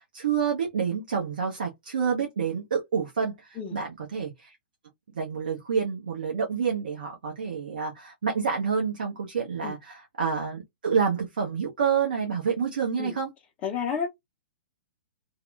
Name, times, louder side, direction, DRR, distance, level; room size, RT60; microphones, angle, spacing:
voice 1, 0.0-4.5 5.1-13.3, right 6 dB, 60° right, 0.7 m, -28 dB
voice 2, 13.6-14.1, left 6 dB, 25° left, 0.5 m, -30 dB
2.8 x 2.0 x 2.4 m
figure-of-eight pair, 110°, 5 cm